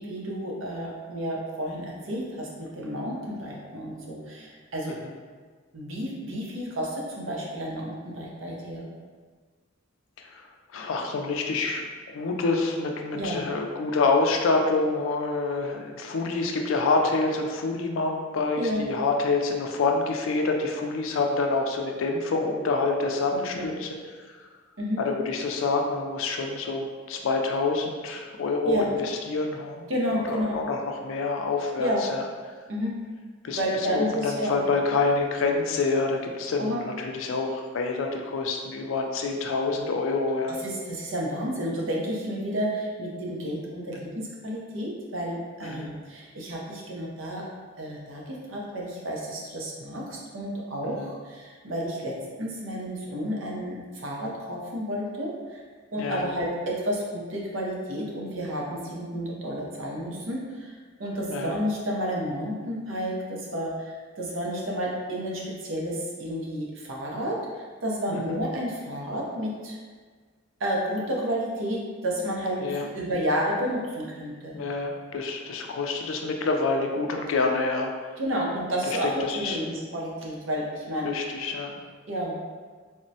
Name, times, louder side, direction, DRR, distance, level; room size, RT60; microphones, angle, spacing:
voice 1, 0.0-4.9 5.7-8.9 13.1-13.4 18.5-18.8 23.5-23.6 24.8-25.0 28.6-28.9 29.9-30.6 31.8-32.0 32.7-32.9 33.5-34.6 36.6-36.8 40.6-47.4 47.8-55.6 55.9-60.7 61.0-69.8 70.6-74.5 78.2-81.1 82.1-82.4, equal, 75° right, -3 dB, 0.6 m, -31 dB
voice 2, 10.7-24.0 25.0-29.9 30.3-32.2 33.4-33.6 33.9-40.6 45.6-45.9 51.0-51.1 56.0-56.3 61.3-61.5 68.1-68.4 72.6-72.9 74.5-77.9 78.9-79.6 81.0-81.7, left 3 dB, 85° left, 3 dB, 0.4 m, -27 dB
3.5 x 2.1 x 2.7 m, 1.5 s
head